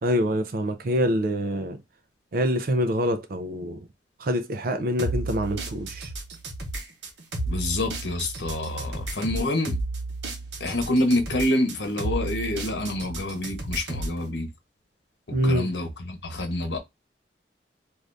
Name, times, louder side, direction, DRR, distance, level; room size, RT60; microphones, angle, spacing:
voice 1, 0.0-1.8 2.3-3.9 4.2-6.1 15.3-15.7, equal, 55° right, 0.4 m, -25 dB
sound 1, 5.0-14.2, right 2 dB, 75° right, 0.8 m, -33 dB
voice 2, 7.5-9.8 10.6-14.5 15.3-16.8, left 1 dB, 80° left, 0.9 m, -27 dB
2.6 x 2.5 x 3.3 m
head